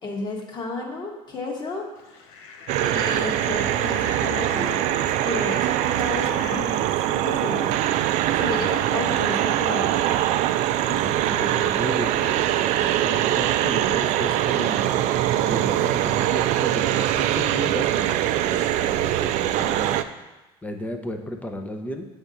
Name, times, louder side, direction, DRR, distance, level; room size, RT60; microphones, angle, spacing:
voice 1, 0.0-2.2 2.8-7.8 8.3-10.0, left 3 dB, 35° left, 0 dB, 1.5 m, -32 dB
Fowl, 1.9-20.1, left 5 dB, 85° left, 0.8 m, -46 dB
sound 1, 2.7-20.0, right 12 dB, 65° right, 0.4 m, -23 dB
voice 2, 10.9-20.1 20.6-22.1, left 1 dB, 10° left, 5 dB, 0.7 m, -34 dB
8.0 x 3.6 x 5.5 m, 1.1 s
cardioid pair, 115°, 13 cm